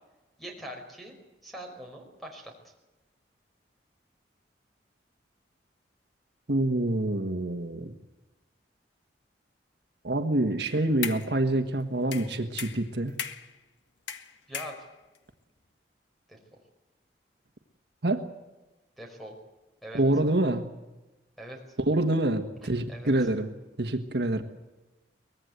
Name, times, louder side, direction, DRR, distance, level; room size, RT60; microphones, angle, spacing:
voice 1, 0.4-1.1 1.4-2.5 14.5-14.7 16.3-16.4 19.0-19.4 19.8-20.0 21.4-21.6 22.9-23.1, right 1 dB, ahead, 3 dB, 5.1 m, -42 dB
voice 2, 6.5-7.9 10.0-13.1 18.0-18.2 19.9-20.7 21.8-23.5 23.8-24.4, right 1 dB, 65° right, 6 dB, 1.5 m, -26 dB
sound 1, 10.6-11.4 12.1-13.6 14.1-15.2, left 7 dB, 80° left, 1.6 m, -38 dB
24.0 x 19.5 x 8.1 m, 1.1 s
head